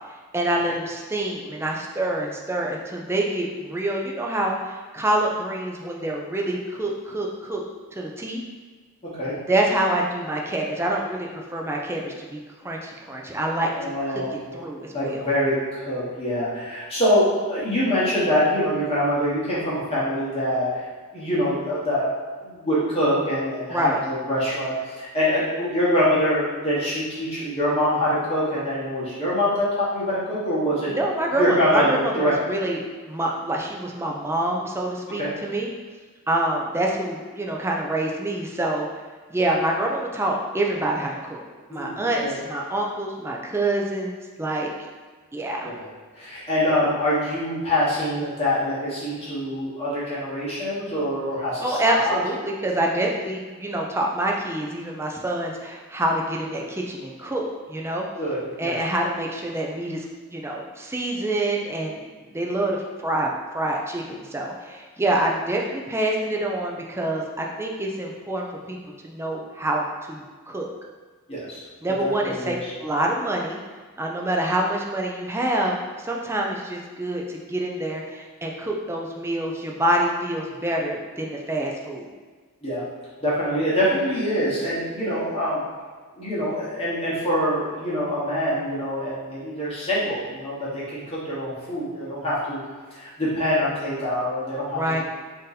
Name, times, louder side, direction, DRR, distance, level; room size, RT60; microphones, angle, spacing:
voice 1, 0.3-7.6 7.9-8.4 9.5-12.4 12.6-13.7 14.1-14.2 14.5-15.3 23.7-24.0 30.9-35.7 36.3-38.9 39.3-41.4 41.7-44.7 45.3-45.7 51.6-58.0 58.6-60.0 60.3-62.1 62.3-63.3 63.5-68.8 69.0-70.7 71.8-73.6 74.0-82.1 94.7-95.0, right 1 dB, 10° right, -1 dB, 0.4 m, -26 dB
voice 2, 13.7-14.6 14.9-20.9 21.1-22.1 22.4-31.0 31.4-32.3 35.2-35.3 41.7-42.3 45.6-45.9 46.2-52.1 58.2-58.8 71.3-71.6 72.0-72.7 82.6-82.8 83.2-85.6 86.2-92.6 92.9-94.8, equal, 25° left, -9 dB, 1.1 m, -24 dB
3.7 x 2.7 x 3.9 m, 1.4 s
head